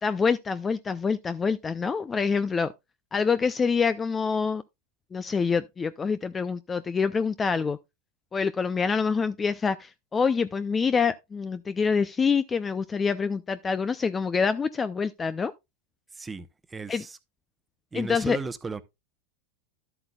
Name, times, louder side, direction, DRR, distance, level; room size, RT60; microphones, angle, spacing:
voice 1, 0.0-2.7 3.1-4.6 5.1-7.8 8.3-15.5 16.9-17.0 17.9-18.4, left 5 dB, 20° left, 0.5 m, -26 dB
voice 2, 16.1-17.2 17.9-18.8, right 4 dB, 15° right, 0.9 m, -36 dB
11.5 x 7.8 x 2.3 m
hypercardioid pair, 100°, 0 cm